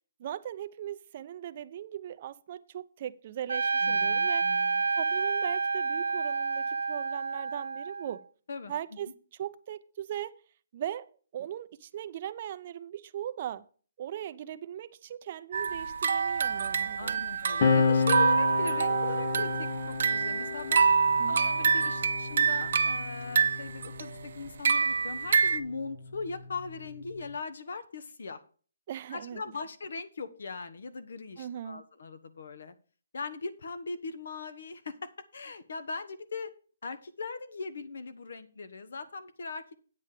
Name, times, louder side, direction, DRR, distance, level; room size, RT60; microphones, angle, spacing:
voice 1, 0.2-8.3 8.7-9.1 9.4-10.3 10.7-13.6 14.0-17.2 21.2-21.5 28.9-29.4 31.4-31.8, right 11 dB, 40° right, 0.6 m, -39 dB
Trumpet, 3.5-8.2, right 4 dB, 85° right, 0.7 m, -29 dB
voice 2, 3.8-4.8 8.5-8.7 17.0-20.9 21.3-28.4 29.1-32.7 33.1-36.5 36.8-39.8, left 4 dB, 70° left, 1.2 m, -39 dB
sound 1, 15.5-25.6, right 5 dB, 60° right, 0.9 m, -27 dB
sound 2, 17.6-24.5 25.5-27.3, left 5 dB, 40° left, 0.9 m, -32 dB
8.7 x 8.3 x 4.9 m
hypercardioid pair, 160°, 0 cm